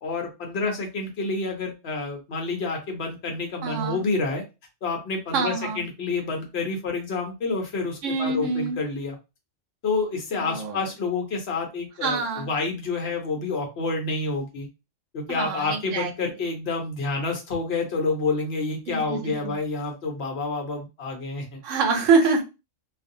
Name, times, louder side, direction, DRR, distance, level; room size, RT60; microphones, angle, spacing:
voice 1, 0.0-4.4 4.8-9.2 9.8-14.7 15.1-21.6, left 3 dB, 60° left, 2 dB, 0.9 m, -28 dB
voice 2, 3.6-4.0 5.3-5.8 8.0-8.8 10.4-10.8 12.0-12.5 15.3-16.1 18.9-19.6 21.6-22.4, right 4 dB, 80° right, 4 dB, 1.0 m, -25 dB
2.5 x 2.1 x 2.6 m, 0.27 s
omnidirectional pair, 1.3 m